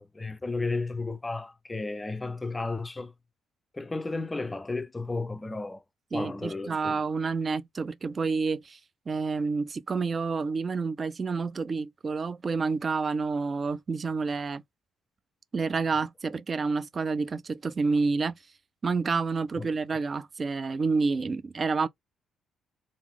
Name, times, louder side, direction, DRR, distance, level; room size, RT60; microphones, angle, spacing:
voice 1, 0.0-3.1 3.7-5.8 6.1-7.0 19.6-19.7, left 3 dB, 20° left, 0.5 m, -33 dB
voice 2, 6.1-8.8 9.1-14.6 15.5-18.4 18.8-21.9, right 4 dB, 35° right, 0.4 m, -29 dB
3.4 x 2.5 x 3.4 m
figure-of-eight pair, 45°, 0 cm